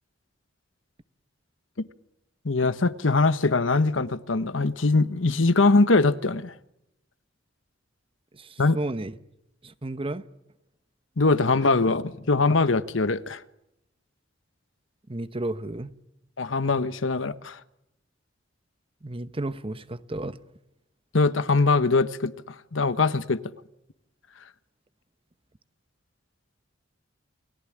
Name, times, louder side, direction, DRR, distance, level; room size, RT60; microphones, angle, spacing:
voice 1, 2.4-6.5 8.6-8.8 11.2-13.4 16.4-17.6 21.1-22.3 22.7-23.4, left 3 dB, 85° left, 1.1 m, -22 dB
voice 2, 8.3-9.2 9.6-10.2 15.1-15.9 19.0-20.4, right 2 dB, 30° right, 1.0 m, -32 dB
29.0 x 18.5 x 10.0 m
head